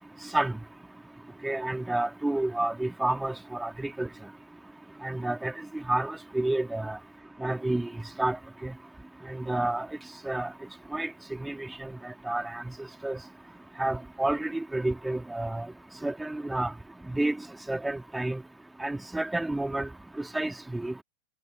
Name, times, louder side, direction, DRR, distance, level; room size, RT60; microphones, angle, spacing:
voice 1, 1.4-4.1 5.0-5.5 5.9-7.0 7.4-7.9 8.2-8.4 8.6-8.7 9.3-9.9 10.3-10.5 10.9-11.1 11.4-11.9 12.3-12.6 13.0-13.2 13.8-15.7 16.0-16.7 17.1-17.4 17.7-18.4 18.8-19.9 20.3-20.9, right 2 dB, 5° right, 2.2 m, -29 dB
figure-of-eight pair, 90°, 0 cm